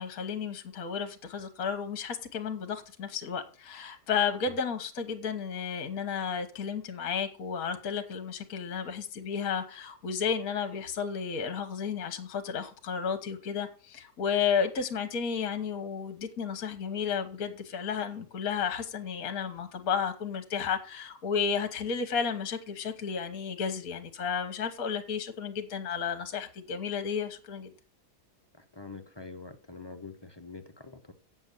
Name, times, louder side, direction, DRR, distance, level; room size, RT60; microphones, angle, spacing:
voice 1, 0.0-27.7, left 6 dB, 60° left, 1.6 m, -32 dB
voice 2, 28.6-31.1, left 4 dB, 20° left, 0.7 m, -45 dB
8.1 x 7.3 x 8.1 m
omnidirectional pair, 1.7 m